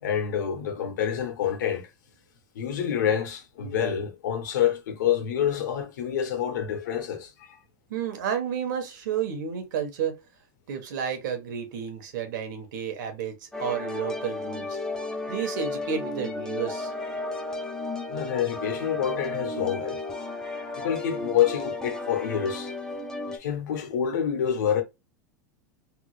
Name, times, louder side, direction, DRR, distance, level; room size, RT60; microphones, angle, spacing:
voice 1, 0.0-1.9 2.5-7.6 18.1-20.0 20.8-22.7 23.3-24.8, left 9 dB, 80° left, 1.2 m, -27 dB
voice 2, 7.9-10.1 10.7-14.8 15.3-16.9, right 8 dB, 80° right, 1.4 m, -31 dB
sound 1, 13.5-23.4, left 2 dB, 5° left, 0.6 m, -33 dB
3.6 x 2.1 x 3.1 m
supercardioid pair, 155°, 10 cm